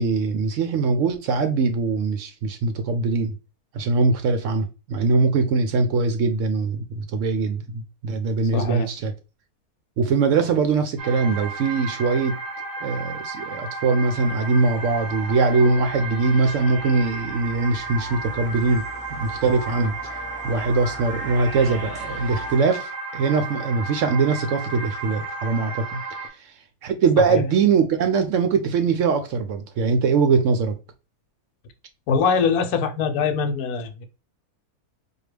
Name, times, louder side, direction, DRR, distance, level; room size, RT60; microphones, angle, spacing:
voice 1, 0.0-3.3 3.7-9.1 10.0-12.4 12.8-18.8 19.1-20.1 20.4-26.0 26.8-30.8, right 4 dB, 70° right, 0.8 m, -22 dB
voice 2, 8.5-8.9 27.3-27.4 32.1-34.0, left 5 dB, 80° left, 1.1 m, -22 dB
sound 1, 11.0-26.3, right 3 dB, 15° right, 0.8 m, -33 dB
sound 2, 14.0-22.6, equal, 5° left, 1.0 m, -42 dB
4.6 x 2.2 x 3.2 m
omnidirectional pair, 1.6 m